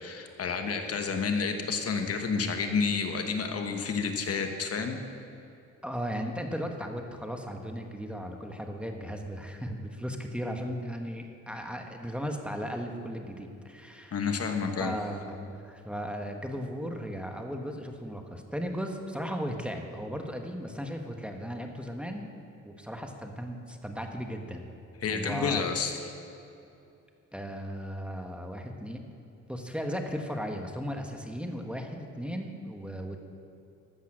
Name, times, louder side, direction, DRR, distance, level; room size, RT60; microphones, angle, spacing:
voice 1, 0.0-5.0 14.1-14.9 25.0-26.0, left 5 dB, 50° left, 5 dB, 1.2 m, -30 dB
voice 2, 5.8-14.3 14.8-22.3 22.6-24.7 25.0-25.6 27.3-29.0 29.5-33.3, equal, 5° right, 3 dB, 1.3 m, -36 dB
14.0 x 8.3 x 6.2 m, 2.6 s
cardioid pair, 90°, 30 cm